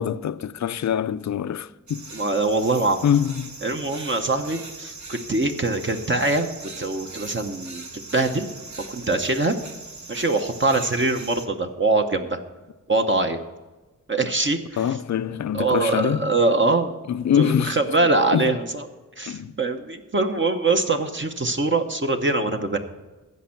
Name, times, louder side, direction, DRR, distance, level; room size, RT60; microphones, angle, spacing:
voice 1, 0.0-2.1 3.0-3.5 14.8-16.3 17.1-17.8 18.3-18.5 19.3-19.5, left 9 dB, 60° left, 0.5 m, -24 dB
sound 1, 1.9-11.5, right 3 dB, 60° right, 1.2 m, -40 dB
voice 2, 2.1-3.0 3.6-6.5 6.8-7.8 8.1-8.5 8.9-9.5 10.1-12.4 12.9-13.4 14.1-15.0 15.5-17.0 17.4-18.9 19.2-22.8, right 3 dB, 35° right, 0.9 m, -23 dB
15.0 x 5.3 x 5.8 m
wide cardioid pair, 70°, 32 cm